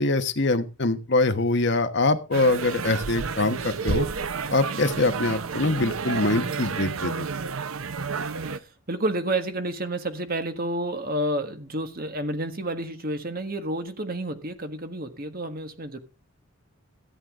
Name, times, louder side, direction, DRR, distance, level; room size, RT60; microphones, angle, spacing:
voice 1, 0.0-4.1 4.5-7.3, left 2 dB, 55° left, 1.2 m, -24 dB
sound 1, 2.3-8.6, right 5 dB, 75° right, 0.8 m, -30 dB
voice 2, 8.6-16.0, right 1 dB, 45° right, 1.6 m, -30 dB
14.0 x 9.5 x 3.7 m
head